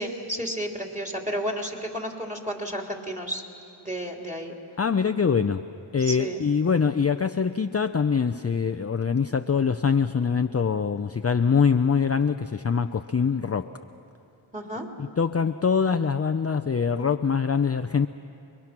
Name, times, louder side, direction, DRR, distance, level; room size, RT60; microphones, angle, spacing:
voice 1, 0.0-3.4 3.8-4.6 6.0-6.4 14.5-14.9, equal, 15° right, 1 dB, 3.3 m, -32 dB
voice 2, 4.8-5.6 5.9-13.7 15.0-18.1, left 6 dB, 30° left, 9 dB, 0.6 m, -24 dB
30.0 x 22.0 x 6.0 m, 2.7 s
cardioid pair, 45°, 50 cm